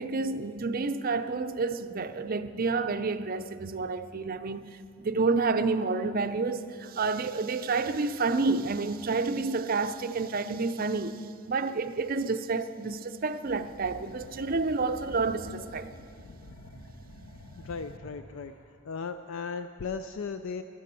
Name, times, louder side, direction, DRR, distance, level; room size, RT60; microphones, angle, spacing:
voice 1, 0.0-15.9, right 4 dB, 40° right, 0.5 m, -29 dB
sound 1, 13.4-18.7, equal, 85° left, 1.4 m, -48 dB
voice 2, 16.2-16.6 17.6-18.5 18.8-20.6, left 5 dB, 65° left, 0.4 m, -37 dB
14.0 x 12.0 x 6.9 m
head